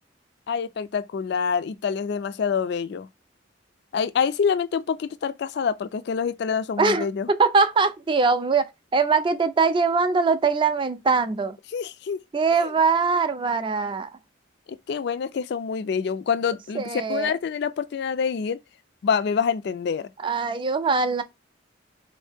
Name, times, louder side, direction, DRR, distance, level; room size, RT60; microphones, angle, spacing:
voice 1, 0.5-3.1 3.9-7.3 11.7-12.2 12.5-12.7 14.7-18.6 19.0-20.1, left 6 dB, 60° left, 0.3 m, -26 dB
voice 2, 6.8-8.7 8.9-11.6 12.3-14.1 16.7-17.3 20.2-21.2, right 4 dB, 25° right, 0.3 m, -22 dB
3.5 x 2.7 x 3.4 m
head